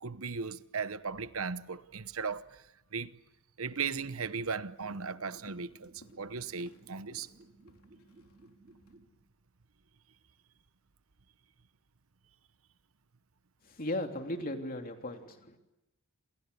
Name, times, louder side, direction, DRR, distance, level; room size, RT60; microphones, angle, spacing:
voice 1, 0.0-2.6 2.9-3.1 3.6-5.9 6.2-7.3, right 5 dB, 70° right, 1.0 m, -37 dB
Walk footsteps, 3.2-3.4 3.7-4.0 4.3-8.9, left 1 dB, 80° left, 3.6 m, -60 dB
sound 1, 3.9-9.1, right 2 dB, 40° right, 3.0 m, -59 dB
voice 2, 13.6-15.6, left 1 dB, 40° left, 3.2 m, -37 dB
28.5 x 28.5 x 6.9 m
head